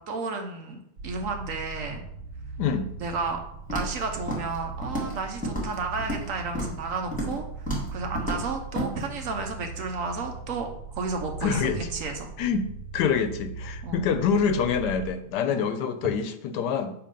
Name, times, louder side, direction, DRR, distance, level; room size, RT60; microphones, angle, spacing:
voice 1, 0.1-2.0 3.0-3.4 3.7-12.3 13.8-14.1 15.5-15.6, right 4 dB, 65° right, 4 dB, 1.0 m, -32 dB
sound 1, 1.0-15.1, right 4 dB, 80° right, 1.4 m, -39 dB
Walk footsteps, 3.7-4.0 4.3-4.6 4.8-5.2 5.4-6.3 6.5-6.8 7.1-7.4 7.7-7.9 8.1-8.4 8.7-8.9, equal, 5° left, 1.7 m, -30 dB
voice 2, 11.4-11.8 12.4-12.7 12.9-16.9, left 6 dB, 90° left, 10 dB, 1.2 m, -26 dB
6.9 x 2.9 x 5.2 m, 0.77 s
omnidirectional pair, 1.7 m